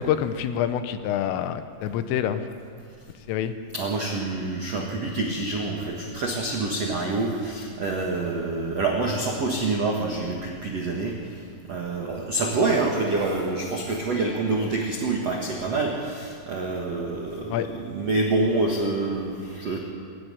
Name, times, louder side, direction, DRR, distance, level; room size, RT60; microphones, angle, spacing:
voice 1, 0.0-2.4 3.3-3.5 17.5-17.7, left 10 dB, 80° left, 10 dB, 3.4 m, -26 dB
voice 2, 3.7-11.4 11.7-19.8, right 3 dB, 75° right, 0 dB, 1.4 m, -27 dB
22.5 x 12.5 x 9.7 m, 2.2 s
omnidirectional pair, 6.0 m